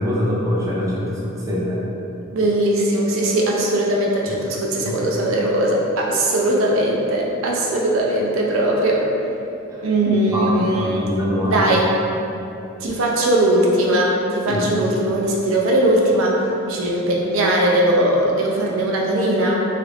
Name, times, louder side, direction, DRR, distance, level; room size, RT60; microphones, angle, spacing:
voice 1, 0.0-1.8 4.3-4.4 4.7-4.9 9.7-9.8 10.3-11.9 14.5-14.6, equal, 15° right, -6 dB, 0.4 m, -24 dB
voice 2, 2.3-9.1 9.8-11.1 11.4-11.9 12.8-16.4 16.7-19.6, right 1 dB, 70° right, -2 dB, 0.5 m, -19 dB
2.9 x 2.4 x 3.2 m, 2.8 s
head